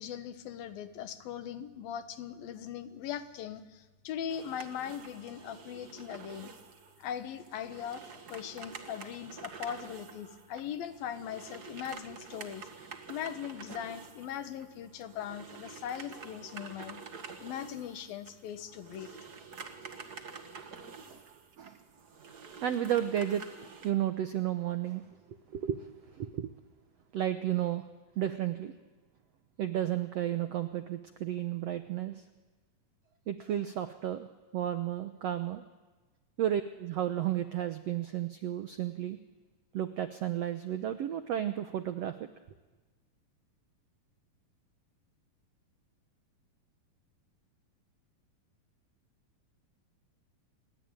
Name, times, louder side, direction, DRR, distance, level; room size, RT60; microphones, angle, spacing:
voice 1, 0.0-6.5 7.0-8.0 8.3-12.7 13.1-17.0 17.4-19.2, left 9 dB, 80° left, 10 dB, 3.2 m, -40 dB
sound 1, 4.3-23.9, right 5 dB, 40° right, 1.5 m, -48 dB
voice 2, 22.6-25.0 25.3-26.5 27.1-27.8 28.2-28.7 29.6-32.2 33.3-34.3 34.5-35.6 36.4-39.2 39.7-42.1, right 11 dB, 75° right, 9 dB, 1.5 m, -33 dB
28.0 x 22.0 x 9.0 m, 1.2 s
omnidirectional pair, 4.2 m